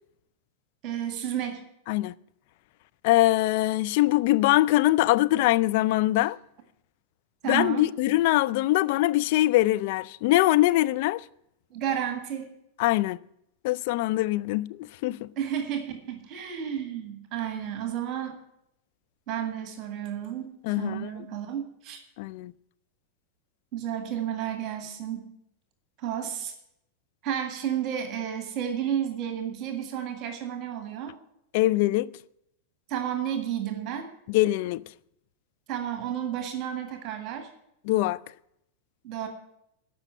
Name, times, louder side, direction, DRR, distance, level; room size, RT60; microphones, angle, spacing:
voice 1, 0.8-1.6 7.4-7.9 11.7-12.5 15.4-18.4 19.3-20.5 20.8-22.0 23.7-25.3 26.0-26.5 27.2-31.1 32.9-34.1 35.7-37.5 39.0-39.3, right 9 dB, 40° right, 1.8 m, -32 dB
voice 2, 3.0-6.4 7.5-11.2 12.8-13.2 13.6-15.3 20.6-21.1 22.2-22.5 31.5-32.1 34.3-34.8 37.9-38.2, left 17 dB, 50° left, 0.4 m, -23 dB
14.0 x 5.7 x 9.0 m
figure-of-eight pair, 90°, 0 cm